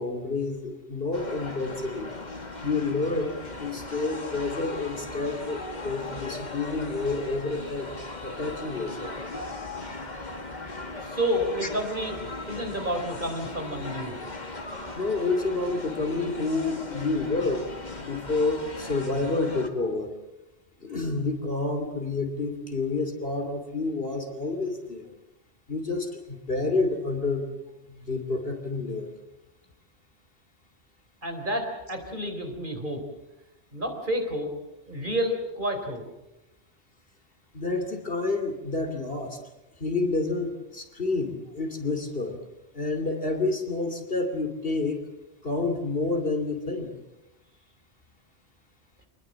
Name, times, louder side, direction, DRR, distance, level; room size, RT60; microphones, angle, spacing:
voice 1, 0.0-2.1 2.6-7.9 8.2-9.2 14.9-17.7 17.9-20.1 20.8-25.1 25.7-27.5 27.9-29.1 37.5-39.4 39.8-42.4 42.7-45.0 45.4-46.9, left 3 dB, 55° left, 5 dB, 3.0 m, -29 dB
sound 1, 1.1-19.7, left 2 dB, 40° left, 2.1 m, -38 dB
voice 2, 11.0-12.2 12.5-14.1 31.2-33.0 33.7-34.5 34.9-36.0, equal, 45° right, 4 dB, 4.2 m, -30 dB
26.5 x 20.5 x 7.5 m, 0.99 s
omnidirectional pair, 1.2 m